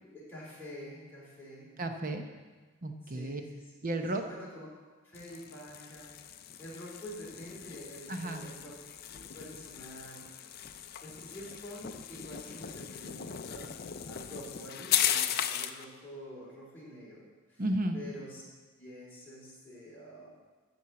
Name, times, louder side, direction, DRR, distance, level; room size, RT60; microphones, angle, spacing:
voice 1, 0.0-1.7 3.0-3.7 4.2-4.7 5.0-10.4 11.0-17.6 17.9-18.4 18.8-20.3, equal, 10° left, -8 dB, 3.6 m, -47 dB
voice 2, 1.8-2.2 2.8-3.4 3.8-4.2 8.1-8.4 17.6-18.0, right 1 dB, 40° right, 5 dB, 0.8 m, -33 dB
sound 1, 5.1-15.8, left 10 dB, 45° left, 0.4 m, -37 dB
13.5 x 4.5 x 7.5 m, 1.3 s
head